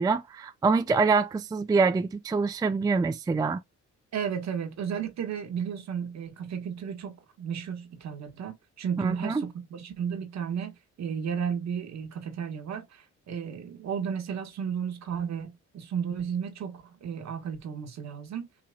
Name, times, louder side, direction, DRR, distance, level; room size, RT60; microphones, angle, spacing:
voice 1, 0.0-3.6 9.0-9.5, right 4 dB, 15° right, 0.3 m, -25 dB
voice 2, 4.1-18.5, right 7 dB, 60° right, 1.4 m, -33 dB
4.9 x 2.8 x 2.3 m
cardioid pair, 90°, 30 cm